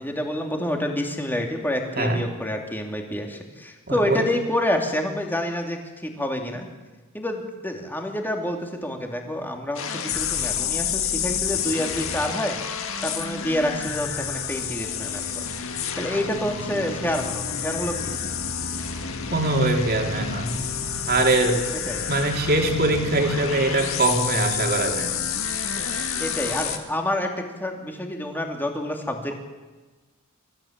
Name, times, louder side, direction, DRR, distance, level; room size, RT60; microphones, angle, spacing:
voice 1, 0.0-6.7 7.1-12.6 13.0-15.4 15.9-18.1 21.9-22.1 26.2-29.4, left 1 dB, 10° left, 2 dB, 2.8 m, -28 dB
voice 2, 3.9-4.3 19.3-20.5 21.1-21.6 22.1-25.1, right 2 dB, 45° right, 3 dB, 3.3 m, -22 dB
sound 1, 9.8-26.8, left 7 dB, 70° left, 2.1 m, -29 dB
25.0 x 15.0 x 8.8 m, 1.3 s
head